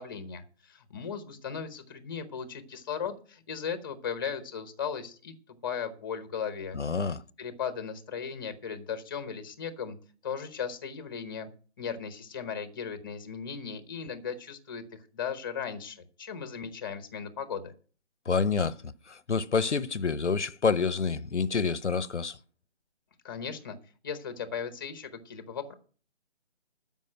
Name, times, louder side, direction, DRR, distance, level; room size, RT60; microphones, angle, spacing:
voice 1, 0.0-5.3 5.6-6.8 7.4-10.0 10.2-11.5 11.8-14.8 15.1-17.7 23.2-23.8 24.0-25.7, left 7 dB, 20° left, 0.9 m, -37 dB
voice 2, 6.7-7.2 18.3-22.4, left 5 dB, 85° left, 0.9 m, -28 dB
13.0 x 5.4 x 7.7 m
figure-of-eight pair, 155°, 34 cm